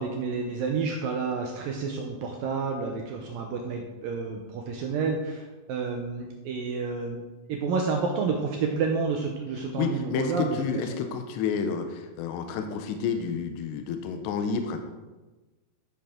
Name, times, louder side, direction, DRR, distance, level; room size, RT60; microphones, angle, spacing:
voice 1, 0.0-7.2 7.5-10.9, right 4 dB, 85° right, 2 dB, 2.0 m, -30 dB
voice 2, 9.8-14.8, left 6 dB, 80° left, 6 dB, 2.9 m, -30 dB
13.5 x 6.9 x 3.7 m, 1.2 s
omnidirectional pair, 5.1 m